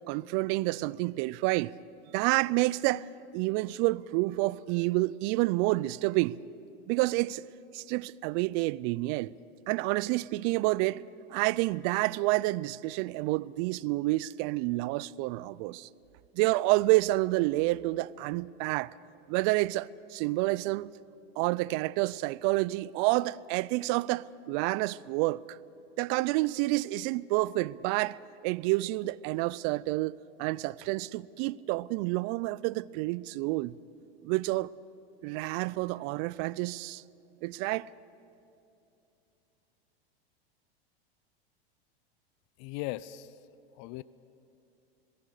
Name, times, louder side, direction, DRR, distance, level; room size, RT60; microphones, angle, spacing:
voice 1, 0.1-1.7 2.1-3.1 3.3-6.4 6.9-7.4 7.7-9.3 9.7-11.0 11.3-15.9 16.3-18.9 19.3-20.9 21.4-25.6 26.0-28.2 28.4-33.7 34.2-34.7 35.2-37.0 37.4-37.9, right 20 dB, 50° right, 0.6 m, -29 dB
voice 2, 42.6-43.3 43.7-44.0, left 16 dB, 50° left, 0.6 m, -38 dB
26.5 x 18.5 x 6.6 m
hypercardioid pair, 105°, 31 cm